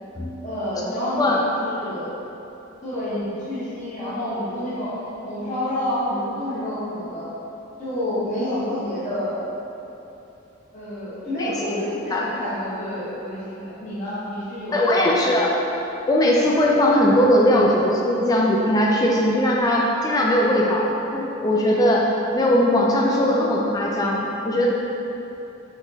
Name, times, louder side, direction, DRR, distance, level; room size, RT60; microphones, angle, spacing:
voice 1, 0.4-2.1 2.8-7.3 7.8-9.4 10.7-15.4, left 1 dB, 35° left, -13 dB, 1.0 m, -28 dB
voice 2, 14.7-15.5 16.1-20.9 21.1-22.1 22.3-24.7, left 1 dB, 20° left, -3 dB, 0.3 m, -19 dB
5.7 x 3.0 x 2.7 m, 3.0 s
head